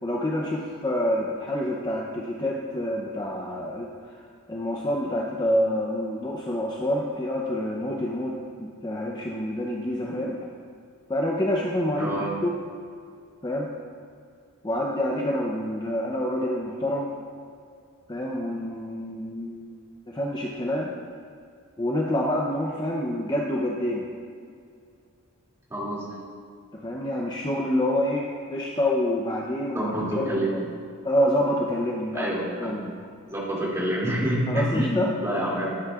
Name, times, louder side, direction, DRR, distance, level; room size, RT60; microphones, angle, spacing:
voice 1, 0.0-4.2 4.5-10.5 11.1-12.5 13.4-13.7 14.6-17.1 18.1-19.7 20.1-20.9 21.8-24.1 26.8-30.6 31.0-32.9 34.5-35.1, left 1 dB, 20° left, -2 dB, 0.6 m, -27 dB
voice 2, 12.0-12.4 25.7-26.2 29.7-30.6 32.1-32.8 33.3-35.0 35.2-35.7, right 1 dB, 15° right, -6 dB, 2.5 m, -27 dB
16.0 x 8.6 x 2.4 m, 2.3 s
head